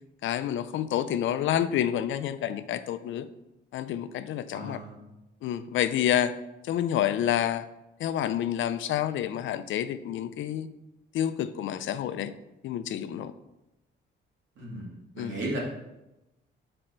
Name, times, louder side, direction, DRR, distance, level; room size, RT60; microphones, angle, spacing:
voice 1, 0.2-3.3 3.7-4.8 5.4-6.3 6.6-7.6 8.0-10.7 11.1-12.3 12.6-13.3 15.2-15.4, left 10 dB, 75° left, 12 dB, 0.5 m, -28 dB
voice 2, 4.5-5.0 14.6-15.6, right 1 dB, 80° right, -3 dB, 2.3 m, -36 dB
6.5 x 4.4 x 4.4 m, 0.95 s
cardioid pair, 130°, 20 cm